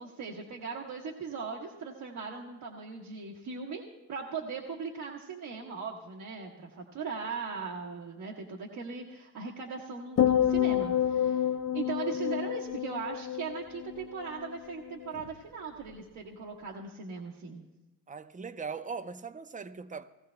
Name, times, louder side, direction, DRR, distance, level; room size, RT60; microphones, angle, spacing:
voice 1, 0.0-3.8 4.1-11.5 11.7-17.6, right 5 dB, 80° right, 1.2 m, -39 dB
sound 1, 10.2-14.6 14.9-15.3, left 10 dB, 50° left, 0.7 m, -29 dB
voice 2, 18.1-20.0, right 5 dB, 25° right, 0.6 m, -39 dB
18.5 x 15.0 x 2.2 m
cardioid pair, 75°, 32 cm